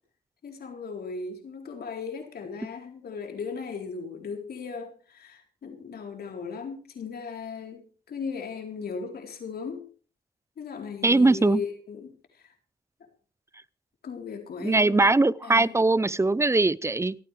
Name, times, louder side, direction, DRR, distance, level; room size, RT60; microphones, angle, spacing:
voice 1, 0.4-9.9 10.6-12.5 14.0-15.1 15.4-15.8, left 5 dB, 75° left, 4.0 m, -37 dB
voice 2, 11.0-11.6 14.6-17.2, right 2 dB, 15° right, 0.6 m, -21 dB
28.5 x 9.6 x 3.4 m
cardioid pair, 70°, 16 cm